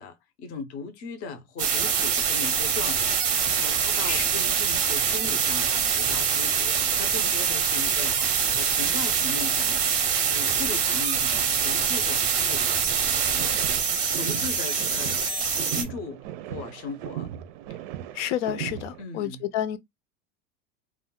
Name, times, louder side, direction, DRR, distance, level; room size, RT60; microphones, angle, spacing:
voice 1, 0.0-9.9 10.3-12.9 13.3-13.6 14.1-15.4 15.7-17.3 19.0-19.5, left 4 dB, 25° left, 0.4 m, -38 dB
sound 1, 1.6-15.8, right 7 dB, 20° right, 0.5 m, -24 dB
sound 2, 13.0-19.0, right 11 dB, 90° right, 0.6 m, -38 dB
voice 2, 18.1-19.8, left 11 dB, 75° left, 0.5 m, -29 dB
2.4 x 2.2 x 3.6 m
supercardioid pair, 170°, 36 cm